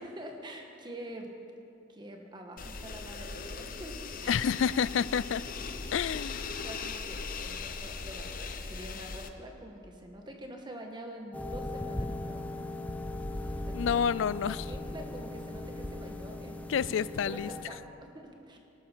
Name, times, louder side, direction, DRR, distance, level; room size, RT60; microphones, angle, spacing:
voice 1, 0.0-1.3 1.9-4.4 6.1-6.3 6.6-12.5 13.4-13.9 14.4-17.0 17.2-18.6, right 1 dB, 20° right, 2 dB, 1.4 m, -46 dB
sound 1, 2.6-9.3, left 4 dB, 45° left, 0.7 m, -39 dB
voice 2, 4.3-5.4 5.9-6.5 13.7-14.6 16.7-17.5, left 7 dB, 70° left, 19 dB, 0.3 m, -29 dB
sound 2, 11.3-17.6, left 1 dB, 10° left, 0.6 m, -38 dB
18.5 x 13.0 x 4.5 m, 2.7 s
head